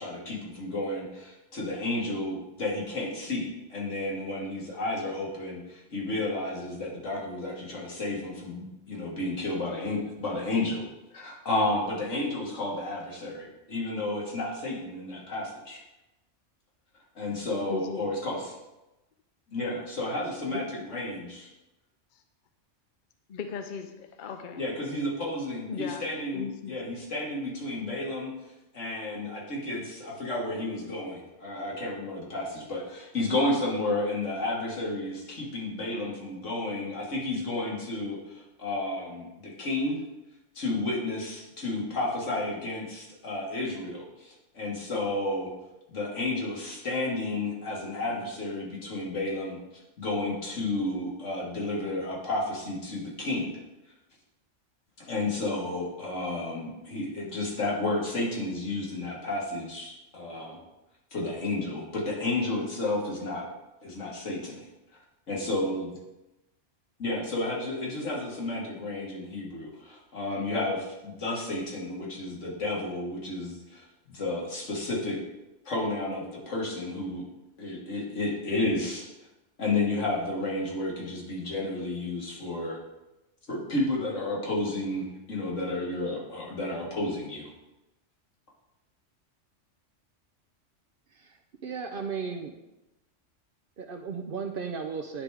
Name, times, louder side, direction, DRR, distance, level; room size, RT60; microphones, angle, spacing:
voice 1, 0.0-10.8 11.1-15.8 17.2-18.6 19.5-21.5 24.6-28.3 28.7-40.0 40.6-45.5 45.9-49.6 50.0-53.6 55.0-60.6 61.1-63.5 63.8-64.7 65.3-65.9 67.0-73.9 74.1-75.2 75.6-77.2 77.6-79.1 79.6-82.8 83.5-87.5, left 2 dB, 75° left, -3 dB, 2.0 m, -32 dB
voice 2, 17.7-18.1 20.5-20.6 23.3-24.6 25.7-26.8, left 6 dB, 55° left, 7 dB, 0.6 m, -37 dB
voice 3, 91.1-92.5 93.8-95.2, right 5 dB, 60° right, 4 dB, 0.6 m, -35 dB
9.8 x 3.4 x 4.8 m, 0.98 s
omnidirectional pair, 1.3 m